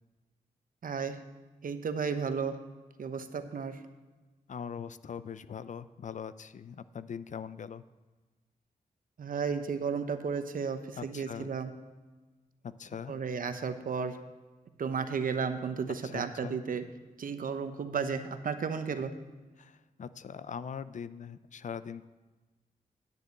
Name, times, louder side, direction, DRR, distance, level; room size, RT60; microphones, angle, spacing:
voice 1, 0.8-1.2 1.6-2.6 3.0-3.8 9.2-11.7 13.1-14.2 14.8-16.9 17.2-19.1, right 6 dB, 70° right, 9 dB, 0.9 m, -33 dB
voice 2, 4.5-7.8 11.0-11.5 12.6-13.1 16.0-16.6 19.0-19.1 19.6-22.1, left 7 dB, 55° left, 15 dB, 0.4 m, -41 dB
10.0 x 6.7 x 8.2 m, 1.3 s
wide cardioid pair, 110°, 15 cm